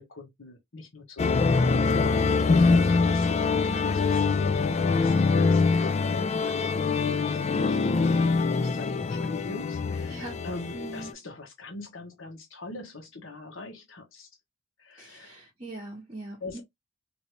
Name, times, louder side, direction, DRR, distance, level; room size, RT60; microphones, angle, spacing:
voice 1, 0.0-14.3 14.8-15.4 16.4-16.6, left 3 dB, 80° left, 1.2 m, -42 dB
sound 1, 1.2-11.1, left 4 dB, 35° left, 0.3 m, -24 dB
voice 2, 10.0-10.5 10.7-11.2 15.0-16.6, right 2 dB, 30° right, 0.8 m, -42 dB
3.0 x 2.7 x 3.0 m
head